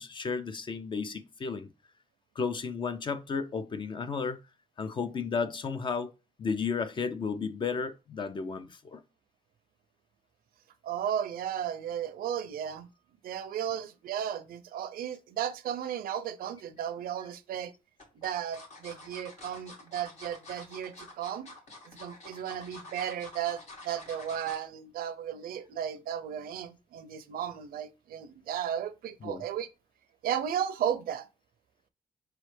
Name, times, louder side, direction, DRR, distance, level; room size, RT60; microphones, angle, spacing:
voice 1, 0.0-1.7 2.4-4.4 4.8-6.1 6.4-9.0 29.2-29.4, left 5 dB, 35° left, 0.4 m, -33 dB
voice 2, 10.8-12.9 13.2-17.7 18.2-21.5 21.9-29.7 30.2-31.3, right 9 dB, 80° right, 0.5 m, -34 dB
sound 1, 16.8-17.3 18.0-24.7 25.1-25.3 25.6-25.7, left 2 dB, 50° left, 1.5 m, -48 dB
4.7 x 3.1 x 3.2 m
wide cardioid pair, 150°, 15 cm